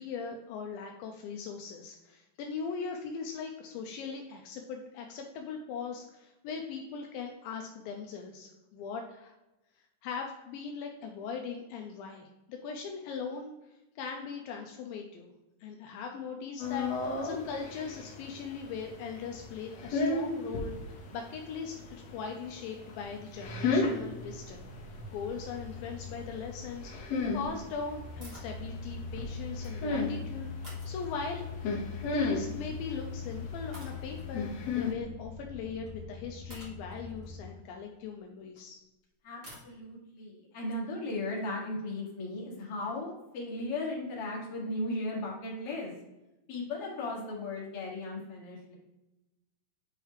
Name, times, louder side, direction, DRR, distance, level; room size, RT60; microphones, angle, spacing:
voice 1, 0.0-9.3 10.0-13.5 14.0-15.3 15.6-20.7 21.1-24.7 25.1-30.5 30.9-31.5 32.1-38.8, left 5 dB, 85° left, 2 dB, 2.2 m, -40 dB
sound 1, 16.6-34.9, left 3 dB, 70° left, 1.6 m, -36 dB
sound 2, 23.3-37.4, left 4 dB, 70° right, 4.3 m, -42 dB
sound 3, 28.2-28.6 29.4-30.0 30.6-31.5 32.8-33.0 33.7-34.3 35.9-36.0 36.5-38.6 39.4-39.7, equal, 45° right, 1.0 m, -52 dB
voice 2, 39.2-45.9 46.5-48.7, left 2 dB, 45° left, -4 dB, 2.4 m, -36 dB
8.8 x 4.8 x 3.2 m, 0.97 s
omnidirectional pair, 4.7 m